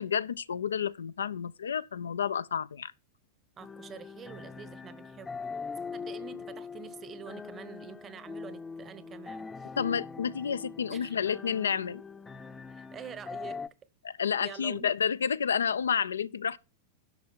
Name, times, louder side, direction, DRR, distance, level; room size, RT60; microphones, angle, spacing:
voice 1, 0.0-2.9 9.8-12.0 14.0-16.6, left 7 dB, 70° left, 0.4 m, -30 dB
sound 1, 3.6-13.7, left 5 dB, 15° left, 0.7 m, -42 dB
voice 2, 3.6-5.4 5.9-9.7 10.9-11.2 12.7-13.6 14.4-14.9, right 7 dB, 25° right, 1.0 m, -46 dB
11.0 x 6.4 x 4.4 m
figure-of-eight pair, 90°, 0 cm